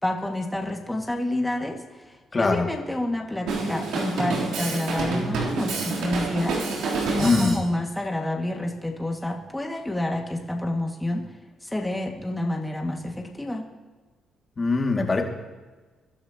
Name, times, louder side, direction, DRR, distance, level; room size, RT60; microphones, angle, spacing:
voice 1, 0.0-6.6 7.0-11.2 11.6-13.7, left 1 dB, 10° left, 1 dB, 2.0 m, -29 dB
voice 2, 2.3-2.7 7.2-7.6 14.6-15.2, left 3 dB, 30° left, 2 dB, 2.3 m, -22 dB
Drum kit, 3.5-7.6, right 3 dB, 90° right, 3.5 m, -28 dB
22.5 x 12.0 x 3.0 m, 1.3 s
cardioid pair, 90°, 0 cm